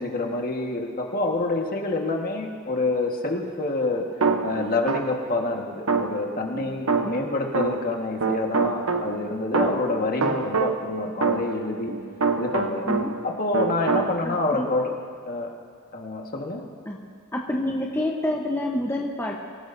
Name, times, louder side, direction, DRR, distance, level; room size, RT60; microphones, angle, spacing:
voice 1, 0.0-4.1 4.4-11.9 12.4-12.9 13.2-15.0 15.3-15.5 15.9-16.6, left 2 dB, 45° left, 1 dB, 1.6 m, -27 dB
sound 1, 4.2-5.3 5.9-8.0 8.2-13.3 13.5-14.1, right 4 dB, 70° right, 0.9 m, -26 dB
voice 2, 14.2-14.6 16.8-17.0 17.3-19.4, left 1 dB, 10° left, -1 dB, 1.0 m, -27 dB
24.5 x 16.5 x 2.7 m, 2.2 s
head